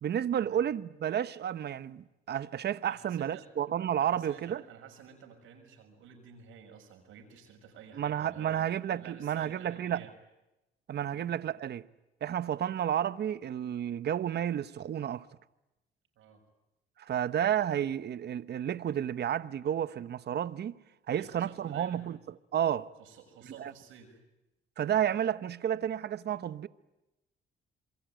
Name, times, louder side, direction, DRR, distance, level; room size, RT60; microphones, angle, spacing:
voice 1, 0.0-4.6 8.0-10.0 10.9-11.9 12.2-15.3 17.0-20.8 21.1-22.2 22.5-22.9 23.6-23.7 24.8-26.7, right 10 dB, 55° right, 0.9 m, -31 dB
voice 2, 2.9-3.5 4.0-8.7 9.0-10.1 11.1-11.3 16.1-16.4 21.1-22.1 23.0-24.2, right 7 dB, 90° right, 6.4 m, -52 dB
28.0 x 23.0 x 9.1 m
cardioid pair, 90°, 20 cm